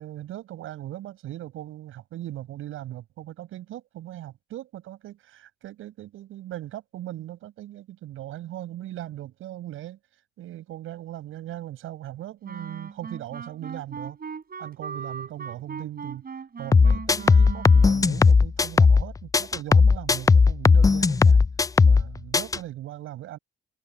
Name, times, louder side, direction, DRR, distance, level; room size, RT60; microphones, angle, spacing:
voice 1, 0.0-10.0 10.4-14.2 14.6-16.2 16.6-21.4 21.8-23.4, right 13 dB, 80° right, 7.9 m, -38 dB
Wind instrument woodwind instrument, 12.4-18.2, right 5 dB, 45° right, 6.9 m, -38 dB
sound 1, 16.7-19.1 19.3-22.1 22.3-22.6, left 4 dB, 15° left, 0.3 m, -17 dB
supercardioid pair, 60°, 21 cm